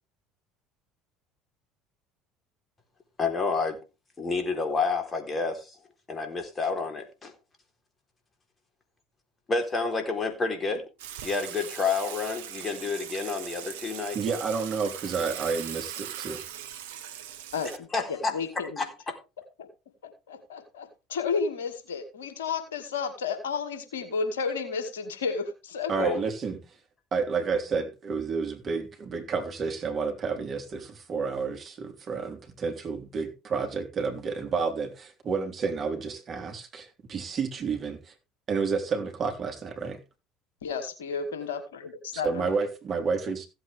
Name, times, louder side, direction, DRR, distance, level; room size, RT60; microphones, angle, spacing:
voice 1, 3.2-3.8 4.2-5.8 6.1-7.3 9.5-10.8 11.2-14.2 17.9-19.2 26.0-26.2, left 4 dB, 30° left, 5 dB, 3.9 m, -29 dB
Water / Water tap faucet / Sink (filling or washing), 11.0-17.8, right 10 dB, 75° right, 1.0 m, -40 dB
voice 2, 14.1-16.4 25.9-26.6 27.1-38.1 38.5-40.0 42.1-43.5, right 5 dB, 40° right, 5 dB, 3.2 m, -30 dB
voice 3, 17.5-18.9 20.3-25.9 40.6-42.5, left 5 dB, 80° left, 7 dB, 2.1 m, -32 dB
16.0 x 8.2 x 3.5 m, 0.28 s
hypercardioid pair, 65°, 0 cm